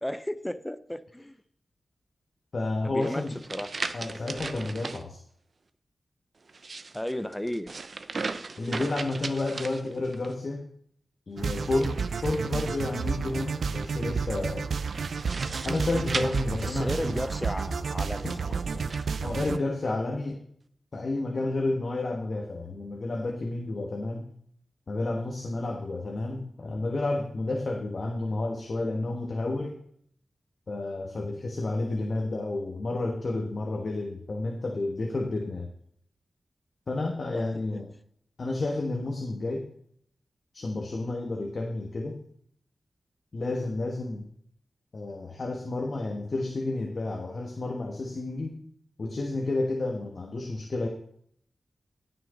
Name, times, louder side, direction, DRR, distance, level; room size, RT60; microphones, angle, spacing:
voice 1, 0.0-1.3 2.8-3.2 3.5-3.7 6.9-7.7 16.6-18.6 37.3-37.4 37.7-37.8, left 1 dB, 10° left, 13 dB, 0.6 m, -34 dB
voice 2, 2.5-3.4 3.9-5.2 8.6-10.7 11.3-14.7 15.6-17.2 18.5-18.6 19.2-20.4 20.9-24.3 24.9-29.8 30.7-35.7 36.9-37.9 38.4-39.7 40.5-42.2 43.3-44.3 44.9-48.6 49.0-50.9, left 2 dB, 50° left, 1 dB, 1.3 m, -31 dB
sound 1, 3.0-5.0 6.4-10.3 11.7-13.0 14.9-17.3 18.0-19.1, right 3 dB, 50° right, 0.7 m, -37 dB
sound 2, 11.4-19.6, right 5 dB, 85° right, 0.5 m, -31 dB
Walk footsteps, 11.6-11.9 12.2-13.6 13.9-15.2 15.5-19.0 19.3-19.6 20.0-20.1, left 2 dB, 35° left, 1.5 m, -44 dB
17.5 x 6.0 x 3.9 m, 0.64 s
wide cardioid pair, 110°, 0 cm